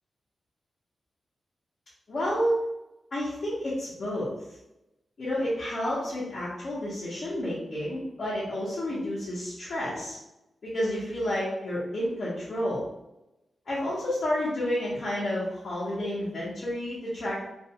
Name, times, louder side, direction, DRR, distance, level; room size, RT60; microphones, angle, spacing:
voice 1, 2.1-2.6 3.1-4.3 5.2-10.2 10.6-12.9 13.7-17.4, left 1 dB, 50° left, -8 dB, 0.7 m, -30 dB
2.4 x 2.3 x 2.7 m, 0.91 s
wide cardioid pair, 130°, 0 cm